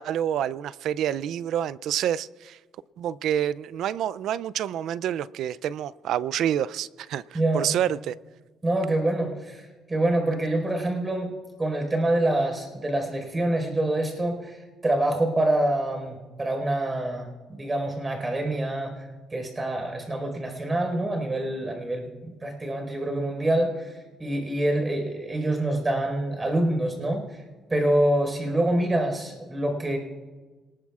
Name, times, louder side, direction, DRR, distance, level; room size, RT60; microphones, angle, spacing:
voice 1, 0.0-2.6 3.0-8.1, right 10 dB, 80° right, 19 dB, 0.4 m, -28 dB
voice 2, 8.6-11.3 11.6-19.0 19.3-23.9 24.2-27.4 27.7-30.0, right 1 dB, 25° right, 3 dB, 4.6 m, -26 dB
27.0 x 19.5 x 2.4 m, 1.4 s
cardioid pair, 90°, 0 cm